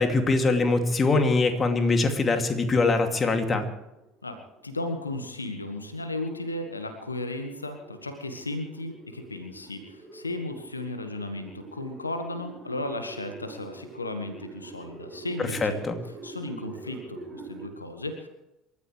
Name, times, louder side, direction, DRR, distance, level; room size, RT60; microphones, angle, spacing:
voice 1, 0.0-3.7 15.6-16.0, left 3 dB, 30° left, 5 dB, 2.5 m, -23 dB
sound 1, 4.0-17.7, right 2 dB, 25° right, 4.9 m, -46 dB
voice 2, 4.2-15.8 16.2-18.3, left 2 dB, 90° left, 7 dB, 1.5 m, -35 dB
28.5 x 13.5 x 3.3 m, 0.93 s
figure-of-eight pair, 65°, 0 cm